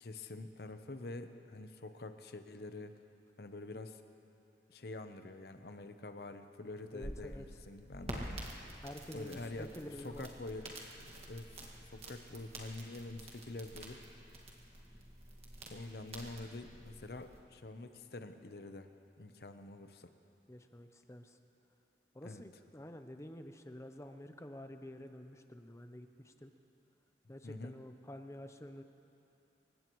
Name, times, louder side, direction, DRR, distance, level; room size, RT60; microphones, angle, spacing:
voice 1, 0.0-2.9 3.4-4.0 4.7-8.4 9.1-9.7 10.0-14.0 15.7-18.9 19.2-20.1 22.2-22.4 27.4-27.8, left 2 dB, 60° left, 8 dB, 0.8 m, -46 dB
sound 1, 6.8-17.4, right 1 dB, 35° right, 1.9 m, -49 dB
voice 2, 6.9-7.4 8.8-10.3 20.5-21.4 22.1-26.5 27.3-28.8, left 1 dB, 15° left, 7 dB, 0.7 m, -49 dB
28.5 x 16.0 x 3.1 m, 2.8 s
head